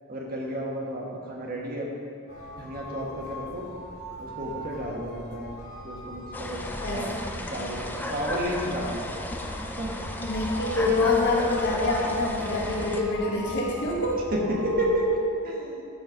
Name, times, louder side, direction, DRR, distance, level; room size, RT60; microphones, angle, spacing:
voice 1, 0.1-1.9 2.6-3.6 4.2-5.4 5.8-6.7 6.9-7.2 7.5-9.1 9.8-9.9 14.3-15.8, right 1 dB, 40° right, -2 dB, 1.5 m, -31 dB
sound 1, 2.3-15.0, left 1 dB, 75° left, 2.2 m, -40 dB
sound 2, 6.3-13.0, left 1 dB, 10° left, 0.5 m, -35 dB
voice 2, 10.2-14.2, left 2 dB, 50° left, -4 dB, 1.8 m, -26 dB
13.0 x 4.6 x 4.6 m, 2.6 s
head